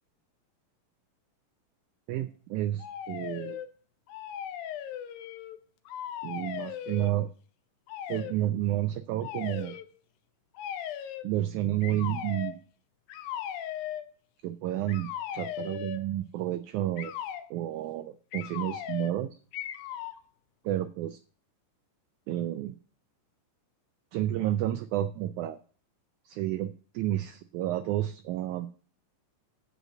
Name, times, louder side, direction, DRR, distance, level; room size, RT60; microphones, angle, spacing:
voice 1, 2.1-3.6 6.2-7.3 8.1-9.8 11.2-12.6 14.4-17.1 17.5-19.4 20.6-21.2 22.3-22.8 24.1-25.6 26.3-28.7, right 13 dB, 80° right, 11 dB, 1.8 m, -31 dB
sound 1, 2.8-3.7 4.1-5.6 5.9-7.2 7.9-8.4 9.2-9.9 10.6-11.3 11.8-12.6 13.1-14.1 14.9-16.1 17.0-17.5 18.3-19.2 19.5-20.2, left 10 dB, 90° left, 2.6 m, -38 dB
8.1 x 6.4 x 7.5 m, 0.41 s
omnidirectional pair, 4.0 m